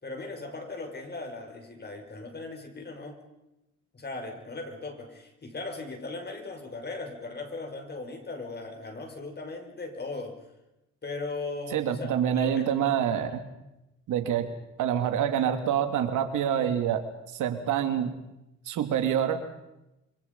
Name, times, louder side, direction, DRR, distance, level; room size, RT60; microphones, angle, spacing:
voice 1, 0.0-3.2 3.9-10.4 11.0-12.6, left 3 dB, 35° left, 5 dB, 5.7 m, -38 dB
voice 2, 11.7-13.4 14.1-14.5 14.8-17.0 17.3-18.1 18.7-19.4, right 9 dB, 85° right, 7 dB, 2.7 m, -26 dB
27.0 x 25.0 x 5.5 m, 0.92 s
cardioid pair, 90°, 30 cm